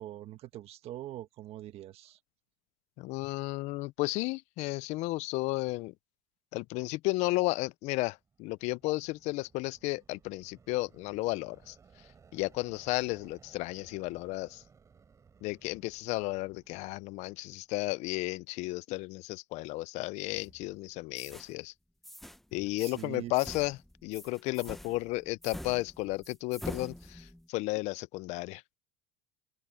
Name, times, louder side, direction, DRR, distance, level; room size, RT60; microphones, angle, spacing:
voice 1, 0.0-2.2 22.8-23.3, right 13 dB, 50° right, 1.4 m, -43 dB
voice 2, 3.0-5.9 6.5-11.8 12.3-14.6 15.4-21.7 22.5-28.6, left 21 dB, 60° left, 0.5 m, -33 dB
sound 1, 8.1-17.9, right 6 dB, 25° right, 4.3 m, -61 dB
sound 2, 20.3-20.7 21.2-21.5 22.0-22.4 22.8-23.1 23.3-27.5, equal, ahead, 0.9 m, -46 dB
open air
cardioid pair, 135°, 13 cm